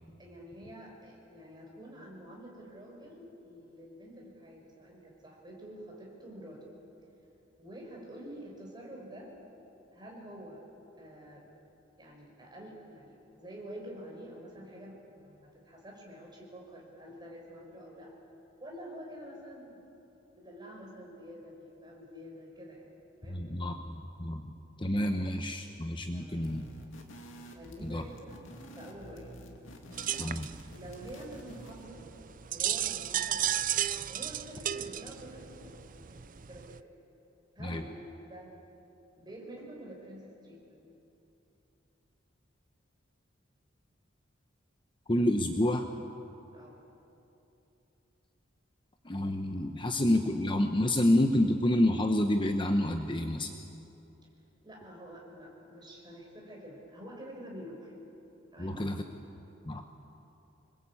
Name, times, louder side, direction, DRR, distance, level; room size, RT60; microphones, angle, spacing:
voice 1, 0.2-6.6 7.6-9.3 9.9-10.6 11.0-11.4 12.0-18.1 18.6-19.8 20.3-22.9 23.1-23.4 26.1-26.5 27.5-28.4 28.7-29.3 30.7-32.0 32.5-33.6 34.1-35.7 36.0-36.8 37.6-37.9 38.2-38.5 39.2-40.8 46.5-46.8 54.6-57.9 58.5-58.8, equal, 20° right, -2 dB, 5.5 m, -47 dB
voice 2, 23.3-26.6 27.8-28.0 30.2-30.5 37.6-37.8 45.1-45.8 49.1-53.5 58.6-59.0 59.7-59.8, left 1 dB, 25° left, 5 dB, 0.9 m, -28 dB
sound 1, 26.4-31.9, equal, 65° left, 2.6 m, -50 dB
sound 2, 29.9-36.8, right 11 dB, 40° right, 0.6 m, -34 dB
26.5 x 21.5 x 8.6 m, 2.9 s
head